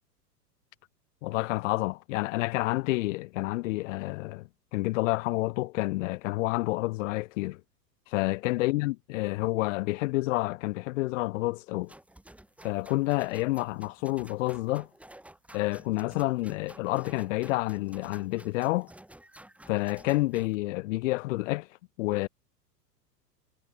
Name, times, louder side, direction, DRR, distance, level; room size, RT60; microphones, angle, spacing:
voice 1, 1.2-7.6 8.1-11.9 12.6-14.9 15.5-18.9 19.7-21.7 22.0-22.3, left 20 dB, 50° left, 2.4 m, -29 dB
sound 1, 11.9-20.5, right 1 dB, 5° right, 4.0 m, -52 dB
figure-of-eight pair, 95°, 49 cm